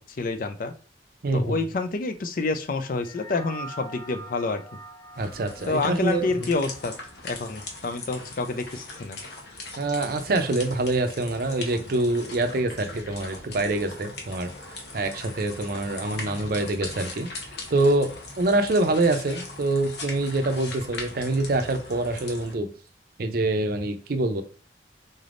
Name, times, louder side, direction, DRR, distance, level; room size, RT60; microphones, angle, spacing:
voice 1, 0.2-0.7 1.3-4.6 5.7-6.9 7.2-9.2, left 3 dB, 50° left, 8 dB, 0.4 m, -28 dB
voice 2, 1.2-1.6 5.2-6.4 9.8-14.5 14.9-17.3 17.7-18.1 18.4-22.7 23.2-24.4, right 2 dB, 55° right, 7 dB, 0.5 m, -25 dB
sound 1, 3.0-7.7, right 2 dB, 10° left, 0.7 m, -44 dB
sound 2, 5.1-22.5, left 2 dB, 70° left, 1.0 m, -40 dB
3.9 x 3.4 x 2.5 m, 0.39 s
head